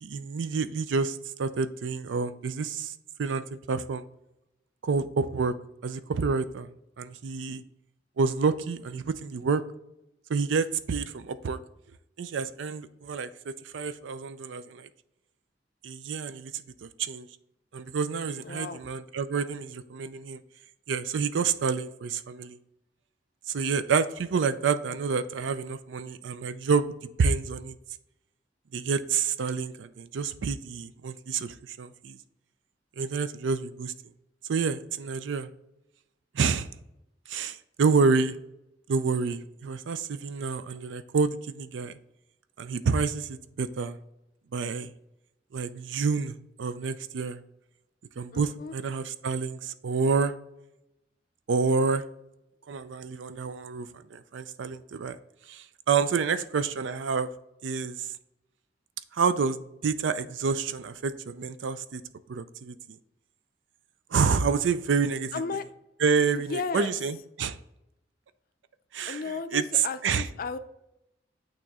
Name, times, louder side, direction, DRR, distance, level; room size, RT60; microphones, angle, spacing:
voice 1, 0.0-2.9 3.2-4.0 4.8-5.5 5.8-6.7 7.0-7.6 8.2-9.6 10.3-11.6 12.2-14.9 15.8-17.3 17.7-20.4 20.9-22.6 23.5-27.8 28.7-32.2 33.0-33.9 34.5-35.5 36.3-36.7 37.3-38.3 38.9-41.9 42.6-44.0 44.5-44.9 45.5-47.4 48.2-50.3 51.5-52.0 52.7-55.2 55.5-57.3 57.6-58.1 59.1-62.0 62.3-63.0 64.1-65.4 66.0-67.6 68.9-70.3, right 5 dB, 80° right, 13 dB, 0.4 m, -28 dB
voice 2, 18.4-18.8 48.3-48.7 65.3-65.6 66.3-66.9 69.1-70.6, left 4 dB, 50° left, 11 dB, 0.4 m, -34 dB
8.8 x 3.0 x 3.6 m, 0.86 s
head